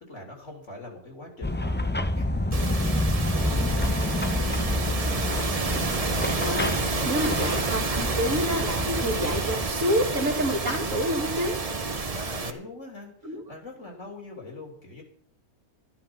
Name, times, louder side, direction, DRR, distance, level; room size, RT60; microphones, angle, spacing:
voice 1, 0.1-8.0 12.0-15.0, left 1 dB, 55° left, 2 dB, 3.7 m, -43 dB
sound 1, 1.4-9.7, left 1 dB, 15° left, 0.4 m, -28 dB
sound 2, 2.5-12.5, right 4 dB, 30° right, 1.0 m, -30 dB
sound 3, 3.3-12.0, right 2 dB, 80° right, 1.9 m, -40 dB
voice 2, 6.4-6.7 7.1-11.6 13.2-13.4, equal, 60° right, 2 dB, 2.5 m, -28 dB
12.5 x 11.5 x 5.7 m, 0.63 s
omnidirectional pair, 1.5 m